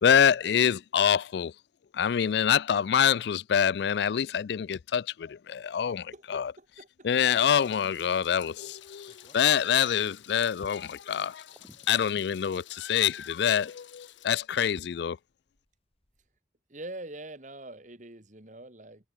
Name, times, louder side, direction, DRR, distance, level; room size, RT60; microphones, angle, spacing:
voice 1, 0.0-1.5 1.9-6.5 7.0-11.4 11.9-15.2, left 8 dB, 65° left, 0.3 m, -26 dB
voice 2, 6.1-7.3 12.1-12.2 16.7-19.1, right 2 dB, 40° right, 2.3 m, -44 dB
sound 1, 6.5-6.9 7.4-10.1 10.6-11.2 11.9-12.0 12.3-12.4 14.1-16.4, left 1 dB, 30° left, 3.5 m, -57 dB
sound 2, 7.1-13.2, equal, 5° right, 6.9 m, -65 dB
Meow, 7.3-14.3, left 10 dB, 85° left, 1.1 m, -48 dB
head